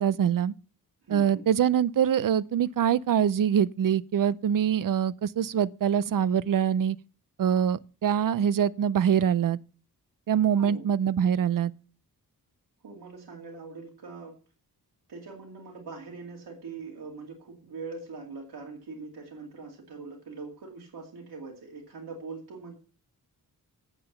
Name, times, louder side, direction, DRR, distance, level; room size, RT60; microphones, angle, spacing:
voice 1, 0.0-0.5 1.1-7.0 7.4-9.6 10.3-11.7, right 8 dB, 60° right, 0.6 m, -24 dB
voice 2, 1.0-1.4 10.6-10.8 12.8-14.4 15.1-22.7, right 4 dB, 85° right, 2.5 m, -42 dB
9.1 x 7.7 x 6.8 m
wide cardioid pair, 145°, 37 cm